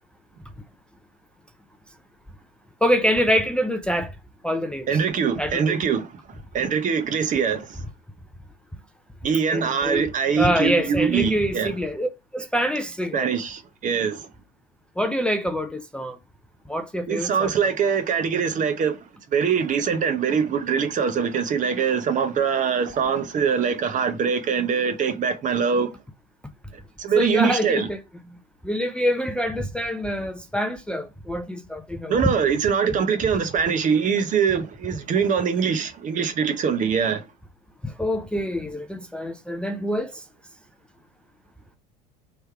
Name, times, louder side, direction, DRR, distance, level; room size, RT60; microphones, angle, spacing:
voice 1, 2.8-4.1 4.4-5.0 5.4-5.8 9.5-10.1 10.4-13.3 15.0-16.2 16.7-17.7 27.2-28.0 28.6-32.3 37.8-40.2, equal, 5° left, 0.5 m, -25 dB
voice 2, 4.9-6.1 6.5-7.8 9.2-11.7 13.1-14.3 17.1-19.0 19.3-25.9 27.0-27.9 32.1-37.2, right 6 dB, 40° right, 0.9 m, -23 dB
3.3 x 3.3 x 4.5 m
hypercardioid pair, 75°, 21 cm